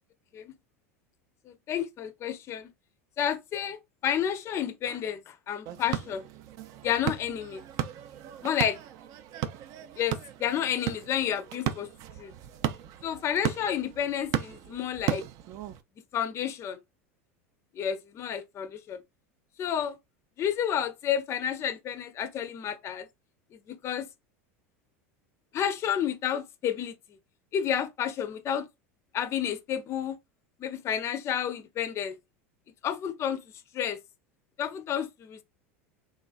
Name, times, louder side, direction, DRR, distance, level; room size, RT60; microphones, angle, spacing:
voice 1, 1.5-2.7 3.2-6.3 6.8-7.6 8.4-8.8 10.0-11.9 12.2-12.3 13.0-15.2 16.1-16.8 17.7-19.0 19.6-20.0 20.4-23.1 23.7-24.0 25.5-26.9 27.5-28.6 29.1-30.2 30.6-32.2 32.8-33.4 33.7-34.0 34.6-35.4, left 9 dB, 40° left, 0.4 m, -30 dB
sound 1, 5.7-15.8, right 11 dB, 50° right, 0.4 m, -35 dB
3.1 x 2.3 x 2.5 m
hypercardioid pair, 90°, 8 cm